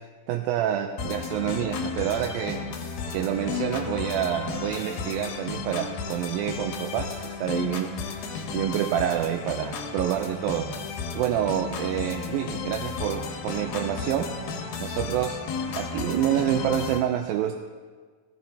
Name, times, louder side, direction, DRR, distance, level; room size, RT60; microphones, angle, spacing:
voice 1, 0.3-10.7 11.2-14.3 14.8-15.4 15.8-17.6, right 11 dB, 80° right, 4 dB, 2.3 m, -28 dB
sound 1, 1.0-17.0, left 5 dB, 90° left, 3.1 m, -33 dB
17.0 x 14.5 x 2.8 m, 1.5 s
omnidirectional pair, 4.3 m